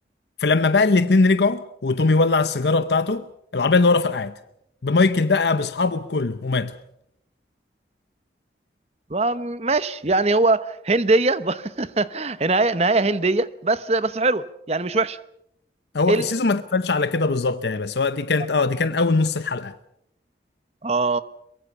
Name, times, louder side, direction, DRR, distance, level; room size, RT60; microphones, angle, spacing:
voice 1, 0.4-3.2 3.5-4.3 4.8-6.7 15.9-19.7, left 3 dB, 75° left, 0.8 m, -20 dB
voice 2, 9.1-15.2 16.1-16.3 20.8-21.2, right 2 dB, 35° right, 0.9 m, -22 dB
23.0 x 22.5 x 7.0 m
head